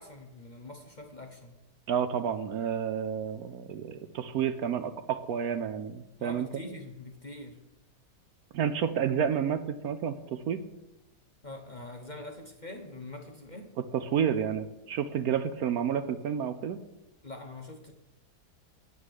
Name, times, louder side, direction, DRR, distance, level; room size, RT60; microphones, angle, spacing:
voice 1, 0.0-1.6 6.2-7.7 11.4-13.7 17.2-17.9, left 2 dB, 35° left, 3 dB, 0.9 m, -44 dB
voice 2, 1.9-6.5 8.5-10.6 13.9-16.8, right 8 dB, 70° right, 11 dB, 1.0 m, -30 dB
9.4 x 8.5 x 6.5 m, 0.93 s
omnidirectional pair, 1.8 m